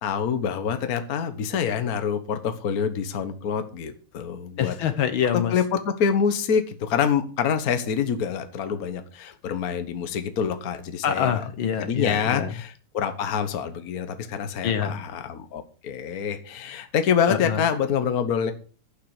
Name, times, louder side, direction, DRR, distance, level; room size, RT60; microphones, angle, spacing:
voice 1, 0.0-4.8 5.5-11.4 11.8-18.5, left 7 dB, 50° left, 8 dB, 1.5 m, -26 dB
voice 2, 4.6-5.5 11.0-12.5 14.6-15.0 17.3-17.6, left 8 dB, 75° left, 10 dB, 1.8 m, -25 dB
12.0 x 8.8 x 4.9 m, 0.38 s
omnidirectional pair, 2.3 m